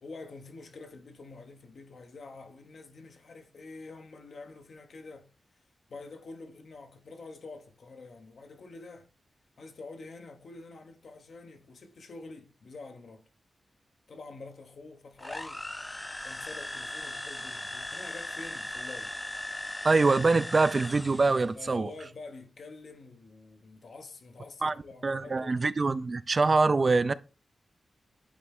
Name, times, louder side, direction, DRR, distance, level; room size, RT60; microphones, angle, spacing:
voice 1, 0.0-5.3 5.9-9.1 9.6-13.2 14.1-15.6 16.2-19.1 21.5-25.5, left 3 dB, 70° left, 1.0 m, -47 dB
sound 1, 15.2-21.5, left 1 dB, 20° left, 0.5 m, -38 dB
voice 2, 19.8-21.9 24.6-24.7 25.0-27.1, right 3 dB, 45° right, 0.3 m, -24 dB
8.7 x 3.2 x 3.6 m
cardioid pair, 70°, 0 cm